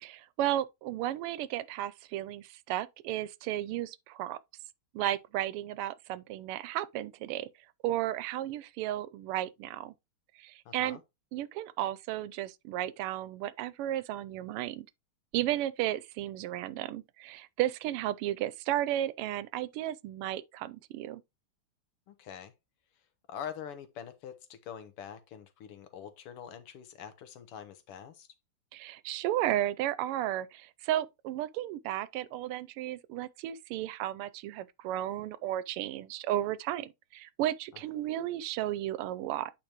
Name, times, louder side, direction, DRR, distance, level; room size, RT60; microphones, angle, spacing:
voice 1, 0.0-4.4 4.9-7.5 7.8-9.9 10.4-11.0 11.3-14.9 15.3-21.2 28.7-39.5, right 13 dB, 90° right, 1.5 m, -34 dB
voice 2, 10.7-11.0 22.1-22.5 23.3-28.3, left 8 dB, 85° left, 1.9 m, -44 dB
8.7 x 5.1 x 3.0 m
omnidirectional pair, 2.4 m